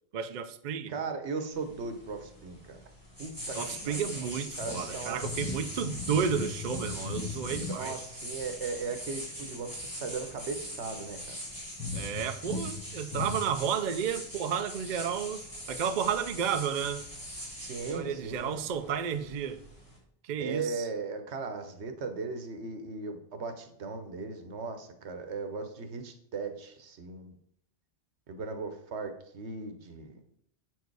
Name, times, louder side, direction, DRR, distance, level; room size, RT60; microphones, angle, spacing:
voice 1, 0.1-0.9 3.5-8.0 11.9-15.4 15.7-17.0 17.8-19.6 20.2-20.9, right 7 dB, 55° right, 9 dB, 0.6 m, -32 dB
voice 2, 0.9-2.8 3.2-3.6 3.9-4.3 4.6-5.2 7.7-11.4 17.6-18.6 20.4-27.3 28.3-30.2, right 4 dB, 85° right, 7 dB, 1.2 m, -37 dB
sound 1, 1.5-20.0, left 1 dB, 20° left, 2.6 m, -40 dB
8.0 x 4.7 x 4.7 m, 0.69 s
omnidirectional pair, 1.1 m